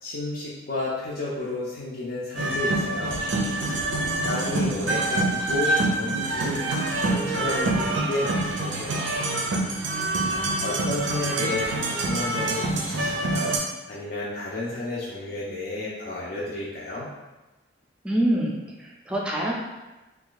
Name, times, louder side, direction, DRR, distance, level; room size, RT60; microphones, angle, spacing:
voice 1, 0.0-3.1 4.3-6.6 7.0-9.1 10.6-13.5 13.9-17.1, left 2 dB, 50° left, -6 dB, 0.5 m, -32 dB
sound 1, 2.4-13.6, right 2 dB, 75° right, 0.5 m, -26 dB
voice 2, 4.0-4.6 9.8-10.8 18.0-19.5, right 1 dB, 5° right, -4 dB, 0.5 m, -28 dB
2.7 x 2.4 x 3.8 m, 1.1 s
head